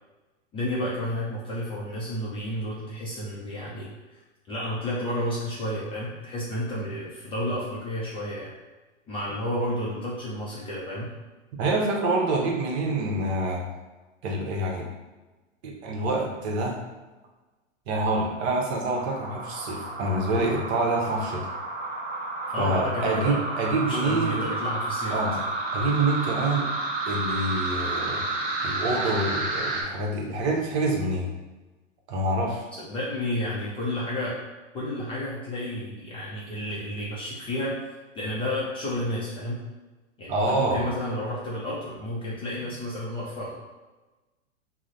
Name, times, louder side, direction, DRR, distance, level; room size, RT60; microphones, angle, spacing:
voice 1, 0.5-4.2 4.5-8.5 9.1-11.1 22.5-23.4 23.8-25.4 32.7-34.4 34.7-37.8 38.1-39.6 40.2-43.5, left 1 dB, 15° left, -6 dB, 0.4 m, -31 dB
voice 2, 11.6-13.6 14.2-14.9 15.6-16.8 17.9-21.5 22.6-24.4 25.1-25.4 25.7-26.7 27.1-28.2 28.6-31.3 32.1-32.6 40.3-40.9, right 2 dB, 55° right, 0 dB, 0.9 m, -26 dB
sound 1, 18.9-29.8, right 2 dB, 25° right, 0.7 m, -31 dB
3.0 x 2.0 x 3.8 m, 1.2 s
hypercardioid pair, 125°, 38 cm